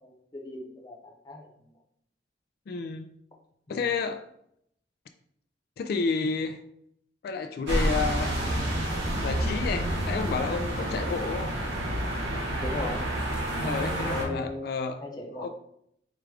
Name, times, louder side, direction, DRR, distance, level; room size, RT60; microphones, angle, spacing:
voice 1, 0.0-1.7 3.7-3.8 12.6-13.1 14.1-14.7 15.0-15.5, left 1 dB, 25° left, 0 dB, 0.7 m, -37 dB
voice 2, 2.7-3.1 3.7-4.2 5.8-6.6 7.2-8.3 9.2-11.5 13.6-15.0 15.3-15.5, left 4 dB, 60° left, 8 dB, 0.3 m, -30 dB
sound 1, 7.7-14.2, right 1 dB, 90° right, 1.0 m, -29 dB
4.8 x 2.4 x 3.3 m, 0.72 s
head